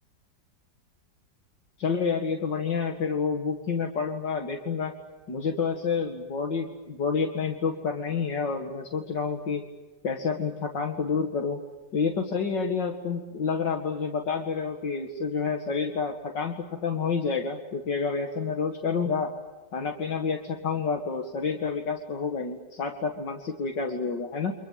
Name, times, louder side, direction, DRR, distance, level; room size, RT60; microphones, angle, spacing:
voice 1, 1.8-4.9 5.3-9.6 10.0-11.6 11.9-19.3 19.7-24.5, left 5 dB, 85° left, 3 dB, 2.6 m, -29 dB
29.5 x 25.5 x 7.6 m, 1.2 s
omnidirectional pair, 1.9 m